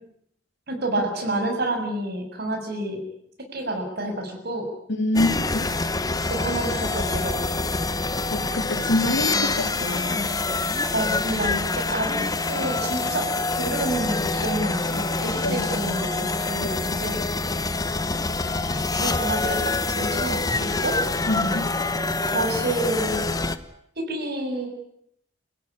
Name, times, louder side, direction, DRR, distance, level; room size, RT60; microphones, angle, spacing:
voice 1, 0.7-3.0 3.5-4.7 6.2-7.7 10.9-12.2 12.5-13.3 13.6-17.2 18.6-21.0 22.2-23.2 24.0-24.7, right 1 dB, 55° right, 3 dB, 7.0 m, -29 dB
voice 2, 5.0-5.7 8.3-10.3 15.4-15.7 21.3-21.7, left 1 dB, 65° left, 6 dB, 3.5 m, -26 dB
sound 1, 5.1-23.6, left 3 dB, 20° left, 1.2 m, -26 dB
28.0 x 16.5 x 10.0 m, 0.73 s
head